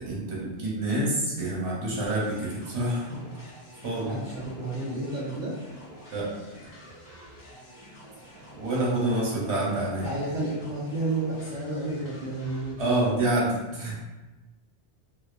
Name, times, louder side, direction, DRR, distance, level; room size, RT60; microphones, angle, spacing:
voice 1, 0.0-3.2 3.8-4.2 6.1-6.3 8.6-10.1 12.8-13.9, right 1 dB, 85° right, -5 dB, 1.1 m, -27 dB
sound 1, 2.1-12.7, equal, 45° left, 0.9 m, -48 dB
voice 2, 4.0-5.6 10.0-13.0, right 2 dB, 55° right, -7 dB, 0.6 m, -31 dB
2.7 x 2.3 x 2.3 m, 1.1 s
omnidirectional pair, 1.1 m